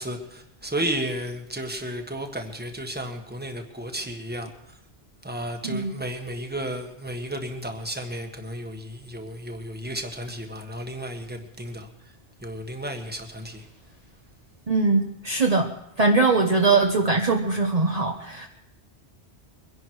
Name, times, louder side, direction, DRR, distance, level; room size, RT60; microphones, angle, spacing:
voice 1, 0.0-4.5 5.2-11.9 12.4-13.6, right 1 dB, 10° right, 4 dB, 1.5 m, -33 dB
voice 2, 5.6-6.0 14.7-15.7 16.0-18.5, right 3 dB, 40° right, 2 dB, 1.0 m, -21 dB
23.0 x 11.0 x 4.7 m, 0.79 s
omnidirectional pair, 1.1 m